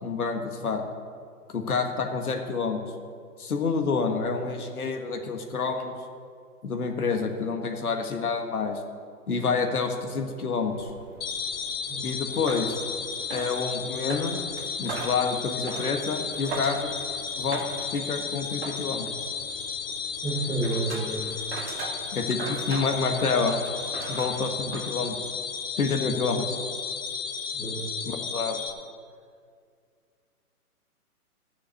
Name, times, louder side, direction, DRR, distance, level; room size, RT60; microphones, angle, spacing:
voice 1, 0.0-0.8 1.5-2.8 3.4-5.9 6.6-8.8 9.3-10.9 12.0-12.8 13.3-14.4 14.8-16.9 17.4-17.6 17.9-19.1 22.1-23.6 24.1-25.2 25.8-26.6 28.0-28.6, left 4 dB, 70° left, 4 dB, 1.7 m, -28 dB
sound 1, 10.5-25.4, right 4 dB, 40° right, 1.7 m, -41 dB
sound 2, 11.2-28.7, left 6 dB, 40° left, 1.1 m, -34 dB
voice 2, 20.2-21.3 27.5-27.8, right 2 dB, ahead, -10 dB, 0.5 m, -30 dB
13.5 x 6.4 x 8.2 m, 2.1 s
figure-of-eight pair, 135°, 46 cm